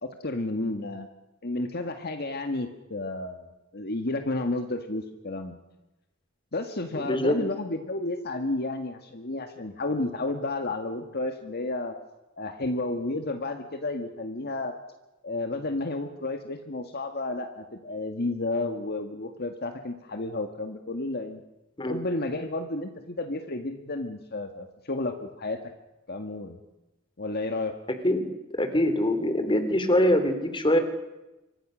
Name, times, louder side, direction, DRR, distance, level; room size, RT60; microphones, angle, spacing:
voice 1, 0.0-1.1 1.4-5.6 6.5-12.0 12.4-14.7 15.2-21.4 21.9-25.6 26.1-26.6 27.2-27.7, left 2 dB, 50° left, 6 dB, 1.9 m, -31 dB
voice 2, 6.9-7.4 21.8-22.0 28.0-28.3 28.5-30.8, left 1 dB, 25° left, 9 dB, 3.1 m, -23 dB
27.0 x 24.5 x 6.4 m, 0.99 s
head